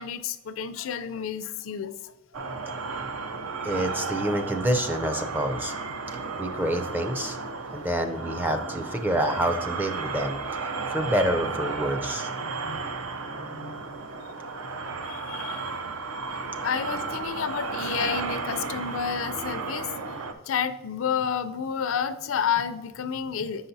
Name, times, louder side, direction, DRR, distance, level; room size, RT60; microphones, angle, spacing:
voice 1, 0.0-2.1 2.8-2.9 12.4-12.8 13.3-13.8 15.0-15.7 16.3-23.7, left 7 dB, 65° left, 10 dB, 0.4 m, -31 dB
sound 1, 2.3-20.3, right 4 dB, 80° right, 0.6 m, -33 dB
voice 2, 3.6-5.7 6.4-7.4 7.7-10.4 10.9-12.3, right 1 dB, 10° right, 6 dB, 0.4 m, -27 dB
8.2 x 5.7 x 2.7 m, 1.1 s
head